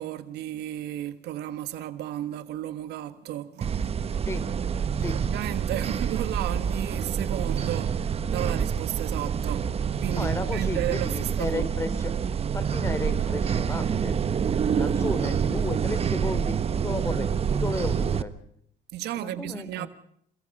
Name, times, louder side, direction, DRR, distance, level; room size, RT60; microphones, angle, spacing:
voice 1, 0.0-4.0 5.1-9.7 10.0-11.7 14.8-14.9 18.9-19.9, right 13 dB, 80° right, 1.5 m, -34 dB
sound 1, 3.6-18.2, right 7 dB, 35° right, 1.1 m, -27 dB
voice 2, 10.1-12.2 12.5-14.2 14.8-18.3 19.1-19.9, left 2 dB, 15° left, 2.9 m, -33 dB
28.5 x 18.0 x 5.4 m
cardioid pair, 110°, 17 cm